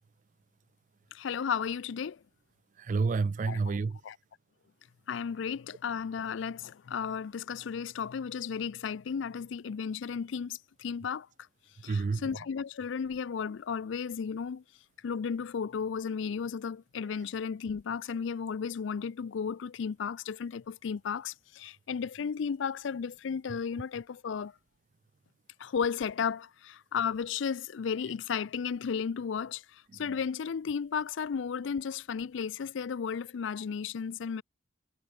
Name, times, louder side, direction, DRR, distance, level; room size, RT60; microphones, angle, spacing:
voice 1, 1.1-2.2 3.5-3.6 4.1-4.2 5.1-11.3 11.8-14.6 15.0-24.5 25.6-34.4, left 6 dB, 70° left, 0.4 m, -34 dB
voice 2, 2.8-4.0 11.9-12.4 23.5-23.6 29.9-30.2, right 4 dB, 40° right, 0.3 m, -30 dB
head